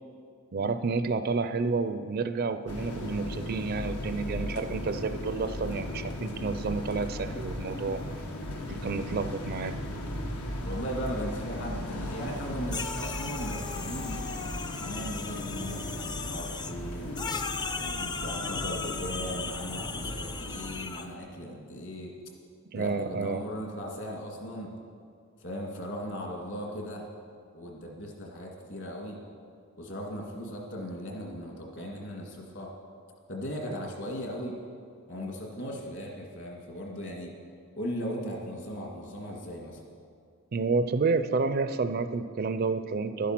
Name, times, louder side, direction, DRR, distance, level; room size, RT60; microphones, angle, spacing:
voice 1, 0.5-8.0 8.7-9.9 22.7-23.4 40.5-43.3, right 4 dB, 45° right, 10 dB, 0.4 m, -30 dB
sound 1, 2.7-20.8, left 1 dB, 85° left, 1.5 m, -37 dB
voice 2, 10.6-14.2 14.8-17.1 17.7-22.1 22.7-24.7 25.4-27.1 27.5-29.2 29.8-32.7 33.3-34.6 35.1-37.3 37.8-39.8, equal, 55° left, 0 dB, 2.2 m, -37 dB
sound 2, 12.7-16.7 17.2-21.1, left 4 dB, 20° left, 0.4 m, -37 dB
12.0 x 10.0 x 5.9 m, 2.2 s
head